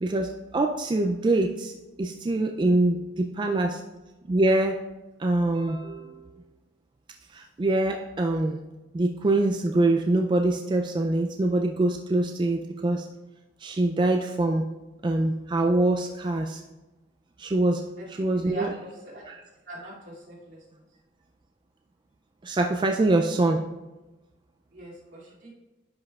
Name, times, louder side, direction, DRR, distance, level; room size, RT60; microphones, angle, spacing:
voice 1, 0.0-3.8 4.3-4.8 5.2-6.4 7.3-8.6 8.9-13.1 13.6-14.6 15.0-16.6 17.4-18.8 19.3-19.4 22.4-23.7, right 2 dB, 25° right, 3 dB, 0.3 m, -24 dB
voice 2, 19.7-20.6 24.7-25.5, right 2 dB, 75° right, -6 dB, 2.5 m, -40 dB
10.5 x 5.3 x 2.4 m, 1.1 s
head